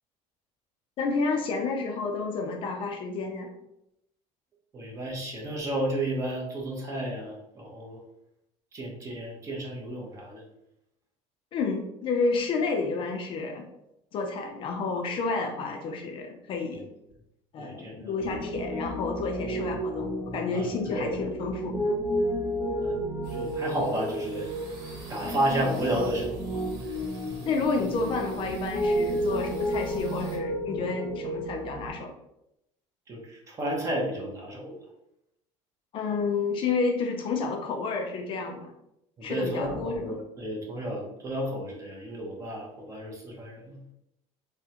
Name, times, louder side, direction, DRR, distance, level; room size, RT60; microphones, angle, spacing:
voice 1, 1.0-3.5 11.5-13.7 14.1-16.9 17.5-21.8 27.5-32.1 35.9-38.7 39.2-40.1, left 4 dB, 40° left, 3 dB, 0.4 m, -30 dB
voice 2, 4.7-8.0 8.7-10.4 15.1-15.2 16.7-16.8 17.6-18.4 20.5-21.1 22.8-23.0 23.3-24.5 25.1-26.5 33.1-34.8 39.2-43.8, right 1 dB, 25° right, -1 dB, 0.6 m, -32 dB
Piano, 18.2-31.9, equal, 55° right, 1.3 m, -32 dB
sound 1, 23.2-30.4, right 2 dB, 75° right, 1.1 m, -50 dB
3.4 x 2.1 x 2.8 m, 0.82 s
cardioid pair, 160°, 14 cm